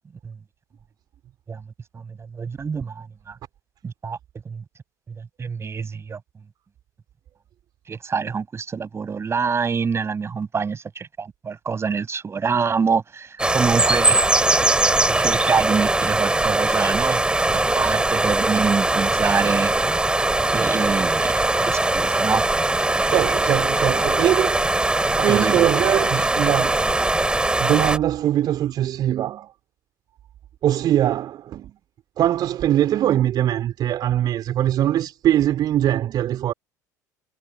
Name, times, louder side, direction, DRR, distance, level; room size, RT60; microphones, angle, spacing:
voice 1, 1.9-3.4 3.8-4.2 4.4-4.6 5.1-6.2 7.9-14.2 15.1-17.2 17.5-19.7 20.5-21.3 21.7-22.4 25.3-25.6, right 5 dB, 25° right, 7.9 m, -26 dB
sound 1, 13.4-28.0, right 2 dB, 10° right, 4.1 m, -21 dB
voice 2, 22.9-26.8 27.6-29.5 30.6-31.7 32.2-36.5, right 12 dB, 45° right, 3.3 m, -22 dB
figure-of-eight pair, 65°, 10 cm